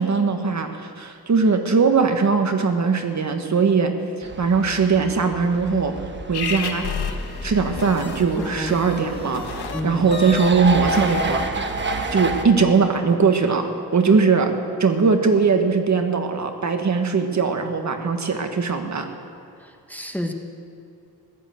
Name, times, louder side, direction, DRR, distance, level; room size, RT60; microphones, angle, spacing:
voice 1, 0.0-3.9 4.4-6.0 6.3-6.9 7.4-11.4 12.1-14.5 14.8-19.1, right 5 dB, 45° right, 6 dB, 1.4 m, -20 dB
sound 1, 4.2-12.5, right 3 dB, 30° right, 1.3 m, -30 dB
sound 2, 6.3-11.8, left 6 dB, 85° left, 1.4 m, -32 dB
voice 2, 8.4-8.8 9.7-10.1 19.6-20.3, left 1 dB, 5° left, 3 dB, 1.2 m, -30 dB
15.5 x 12.0 x 7.8 m, 2.6 s
wide cardioid pair, 105°, 38 cm